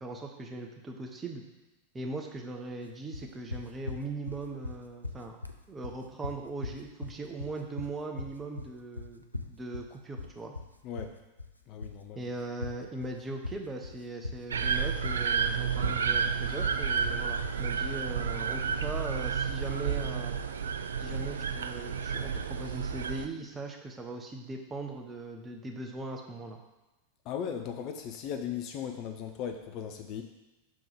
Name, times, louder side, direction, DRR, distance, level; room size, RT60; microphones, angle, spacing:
voice 1, 0.0-1.4 1.9-5.4 5.7-10.5 12.1-20.4 21.0-26.6, right 2 dB, 15° right, 2 dB, 0.8 m, -39 dB
sound 1, 3.1-20.1, left 3 dB, 85° left, 0.4 m, -41 dB
voice 2, 10.8-11.2 11.7-12.2 27.2-30.2, left 8 dB, 40° left, 6 dB, 0.5 m, -37 dB
sound 2, 14.5-23.3, right 6 dB, 70° right, 0.3 m, -31 dB
6.0 x 3.6 x 4.9 m, 1.1 s
figure-of-eight pair, 90°, 0 cm